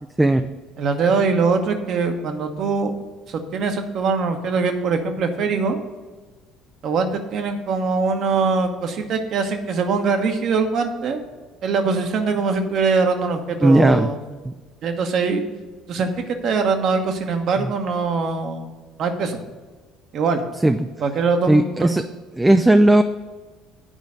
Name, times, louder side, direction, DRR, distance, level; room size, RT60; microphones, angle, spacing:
voice 1, 0.2-0.5 13.6-14.1 14.5-14.6 17.6-17.7 20.6-20.8 21.5-22.0 22.4-23.0, right 1 dB, 10° right, 8 dB, 0.4 m, -15 dB
voice 2, 0.8-2.9 3.3-5.8 6.8-11.2 11.6-14.2 14.8-15.4 15.9-18.7 19.0-19.4 20.1-20.4 21.0-21.9, right 4 dB, 50° right, 6 dB, 1.0 m, -22 dB
9.0 x 5.1 x 6.6 m, 1.3 s
figure-of-eight pair, 55°, 0 cm